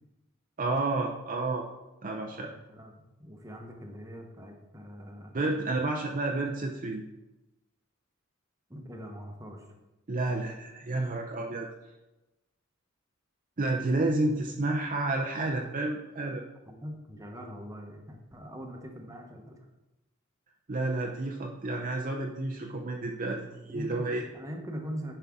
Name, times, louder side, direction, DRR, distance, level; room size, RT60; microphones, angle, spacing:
voice 1, 0.6-1.7 2.0-2.5 5.3-7.0 10.1-11.7 13.6-16.4 20.7-24.2, right 2 dB, 40° right, 1 dB, 0.6 m, -30 dB
voice 2, 2.4-5.4 8.7-9.7 16.7-19.6 23.7-25.1, equal, 15° right, 2 dB, 1.0 m, -42 dB
9.8 x 5.6 x 3.6 m, 1.0 s
head